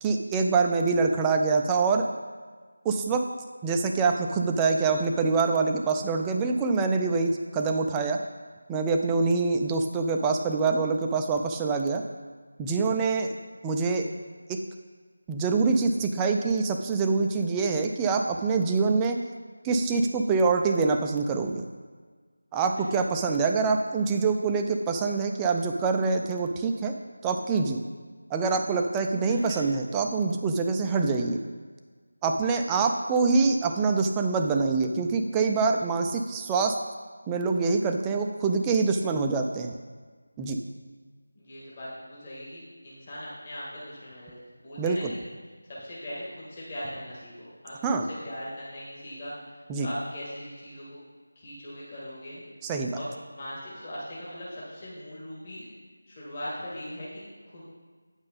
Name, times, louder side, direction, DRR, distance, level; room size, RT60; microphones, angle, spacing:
voice 1, 0.0-2.1 2.8-3.3 3.6-8.2 8.7-12.0 12.6-13.3 13.6-14.1 14.5-14.6 15.3-19.2 19.6-21.6 22.5-26.9 27.2-27.8 28.3-31.4 32.2-36.8 37.3-39.7 40.4-40.6 44.8-45.1 47.8-48.1 49.7-49.9 52.6-53.0, right 4 dB, 10° right, 4 dB, 0.3 m, -25 dB
voice 2, 41.4-45.2 45.7-47.8 48.1-51.0 51.4-52.4 52.9-55.7 56.1-57.7, equal, 30° left, -8 dB, 1.9 m, -40 dB
8.9 x 5.3 x 4.0 m, 1.5 s
figure-of-eight pair, 165°, 0 cm